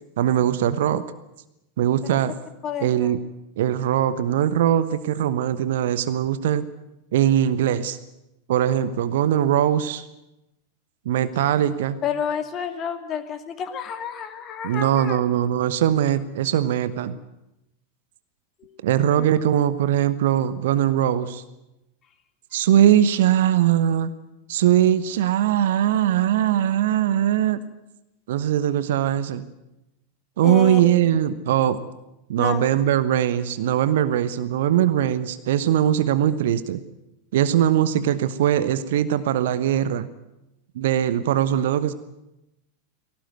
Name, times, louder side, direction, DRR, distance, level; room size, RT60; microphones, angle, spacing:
voice 1, 0.2-1.0 1.8-2.3 2.8-3.2 3.6-6.7 7.1-8.0 8.5-10.0 11.0-12.0 14.6-17.2 18.8-21.4 22.5-24.1 24.5-27.6 28.3-29.4 30.4-31.8 32.3-36.8 37.3-40.1 40.7-41.9, right 11 dB, 55° right, 14 dB, 1.1 m, -21 dB
voice 2, 2.6-3.1 12.0-15.2 18.6-18.7 19.2-19.3 30.4-30.8 32.4-32.7, left 8 dB, 30° left, 7 dB, 2.4 m, -30 dB
21.0 x 18.0 x 9.2 m, 0.92 s
figure-of-eight pair, 90°, 0 cm